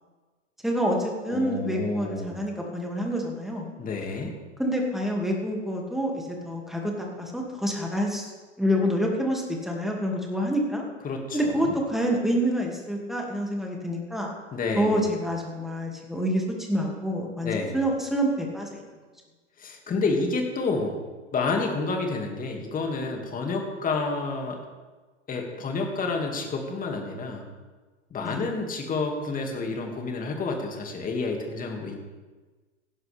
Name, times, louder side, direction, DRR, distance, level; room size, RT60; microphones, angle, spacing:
voice 1, 0.6-3.7 4.6-8.3 8.6-10.8 11.3-14.3 14.7-18.8 28.2-28.5, equal, ahead, -1 dB, 2.4 m, -27 dB
voice 2, 1.3-2.4 3.8-4.3 11.0-11.7 14.5-15.0 17.4-17.8 19.6-21.0 21.3-24.6 25.3-27.4 28.1-32.0, left 3 dB, 20° left, 2 dB, 2.4 m, -29 dB
15.5 x 11.5 x 3.5 m, 1.3 s
hypercardioid pair, 115°, 38 cm